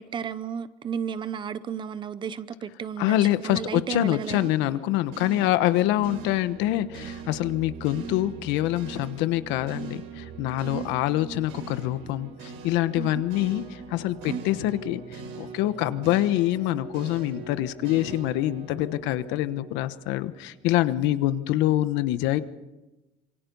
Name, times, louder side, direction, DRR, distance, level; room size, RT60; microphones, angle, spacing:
voice 1, 0.0-4.5 10.6-10.9 13.0-13.2 14.3-14.4, right 7 dB, 25° right, 15 dB, 0.7 m, -33 dB
voice 2, 3.0-22.4, left 15 dB, 75° left, 12 dB, 1.2 m, -25 dB
sound 1, 4.2-20.5, right 5 dB, 85° right, 5.5 m, -41 dB
27.0 x 24.5 x 5.5 m, 1.1 s
cardioid pair, 175°, 19 cm